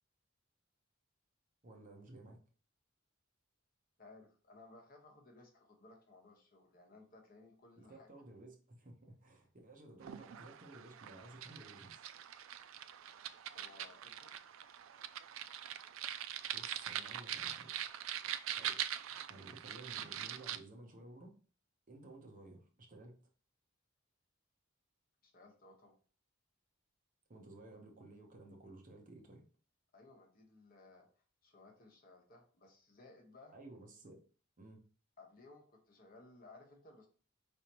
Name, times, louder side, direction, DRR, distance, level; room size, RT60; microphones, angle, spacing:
voice 1, 1.6-2.4 7.8-12.0 15.6-15.8 16.5-17.8 18.6-18.8 19.1-21.4 21.9-23.2 27.3-29.4 33.5-34.2 34.6-34.8, right 2 dB, 40° right, 1 dB, 1.0 m, -55 dB
voice 2, 4.0-8.3 13.5-14.3 25.2-25.9 29.9-33.6 35.2-37.1, left 2 dB, 45° left, 1 dB, 1.1 m, -60 dB
sound 1, 10.0-20.6, right 10 dB, 75° right, 0.3 m, -43 dB
4.9 x 3.5 x 2.9 m, 0.40 s
head